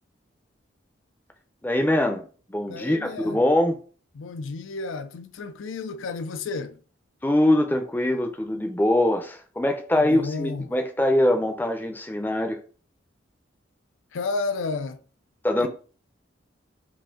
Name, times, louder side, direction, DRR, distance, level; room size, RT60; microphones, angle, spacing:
voice 1, 1.6-3.8 7.2-12.6 15.4-15.7, left 1 dB, 10° left, 0.5 m, -23 dB
voice 2, 2.7-3.5 4.1-6.8 9.9-10.7 14.1-15.0 15.6-15.7, left 3 dB, 90° left, 0.5 m, -32 dB
5.0 x 2.6 x 3.6 m
head